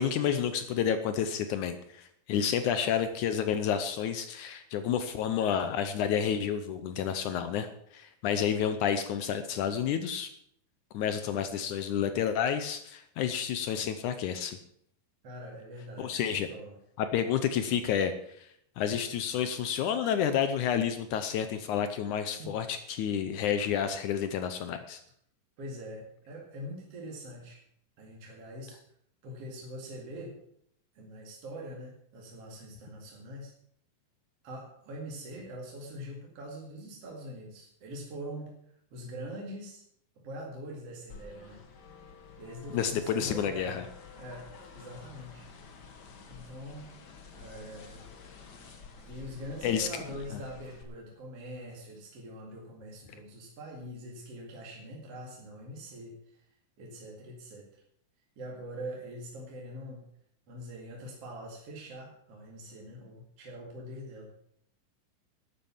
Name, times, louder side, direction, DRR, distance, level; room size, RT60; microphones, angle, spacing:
voice 1, 0.0-10.3 10.9-14.6 16.0-16.5 17.0-18.5 18.8-25.0 42.7-43.8 49.6-49.9, left 8 dB, 75° left, 10 dB, 2.0 m, -30 dB
voice 2, 15.2-16.8 22.4-22.5 25.6-27.6 28.0-28.8 29.2-30.4 30.9-33.5 34.4-39.8 40.2-41.6 42.4-43.8 44.2-44.5 44.7-45.5 46.3-46.9 47.3-48.1 49.1-56.4 56.8-57.8 58.4-60.0 60.5-64.3, equal, 45° right, -1 dB, 2.9 m, -43 dB
sound 1, 41.1-50.8, left 5 dB, 55° left, 1.1 m, -50 dB
12.0 x 9.1 x 7.2 m, 0.69 s
omnidirectional pair, 4.1 m